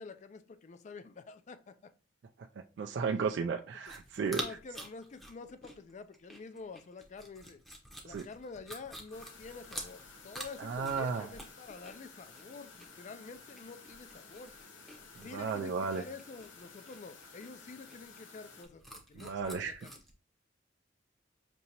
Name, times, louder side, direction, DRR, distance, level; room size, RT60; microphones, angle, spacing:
voice 1, 0.0-1.9 3.0-3.3 4.2-7.6 8.0-14.5 15.2-20.0, left 4 dB, 40° left, 0.3 m, -48 dB
voice 2, 2.8-4.4 8.0-8.3 10.6-11.3 15.2-16.0 19.2-19.8, right 5 dB, 60° right, 0.3 m, -34 dB
sound 1, 3.8-20.1, right 1 dB, ahead, 0.7 m, -48 dB
sound 2, 9.1-18.6, left 4 dB, 85° left, 0.8 m, -54 dB
5.2 x 2.8 x 2.8 m
head